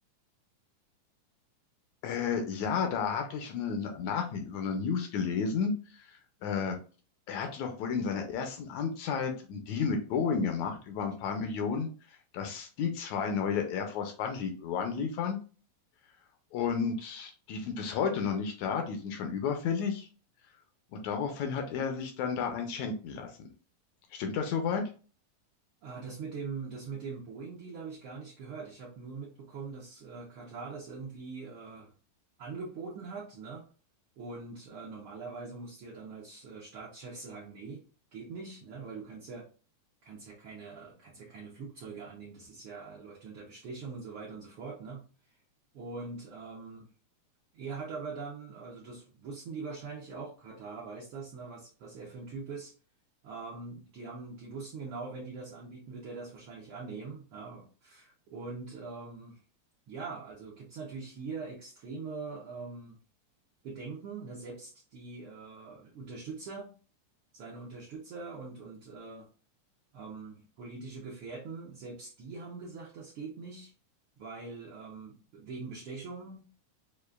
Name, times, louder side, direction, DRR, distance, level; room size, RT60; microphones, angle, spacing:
voice 1, 2.0-6.8 7.3-11.9 12.3-15.4 16.5-20.1 20.9-23.5 24.1-24.8, left 6 dB, 80° left, 5 dB, 1.8 m, -32 dB
voice 2, 25.8-31.9 32.4-33.7 34.2-37.8 38.1-39.5 40.0-45.0 45.7-46.9 47.5-52.7 53.2-59.4 59.9-63.0 63.6-66.7 67.3-69.3 69.9-73.7 74.2-76.5, right 4 dB, 80° right, -3 dB, 1.2 m, -43 dB
6.5 x 2.5 x 2.4 m, 0.37 s
omnidirectional pair, 3.6 m